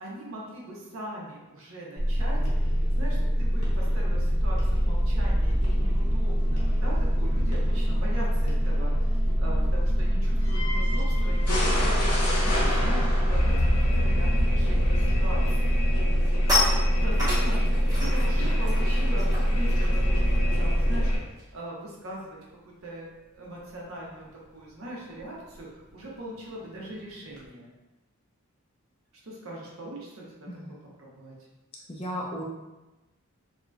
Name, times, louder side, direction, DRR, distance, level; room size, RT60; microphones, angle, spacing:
voice 1, 0.0-2.4 2.9-15.8 16.6-17.7 18.0-22.4 22.8-24.3 24.5-27.7 29.2-30.5 31.0-31.3, right 1 dB, 65° right, -4 dB, 0.8 m, -40 dB
sound 1, 2.0-21.2, equal, 85° left, 0.9 m, -24 dB
sound 2, 2.3-21.3, equal, 10° left, 0.9 m, -36 dB
sound 3, 15.2-15.4 15.7-21.7 21.9-22.2 22.5-27.5, left 2 dB, 15° right, 0.8 m, -34 dB
voice 2, 31.9-32.4, equal, 25° left, -3 dB, 0.4 m, -34 dB
2.9 x 2.5 x 2.3 m, 1.1 s
head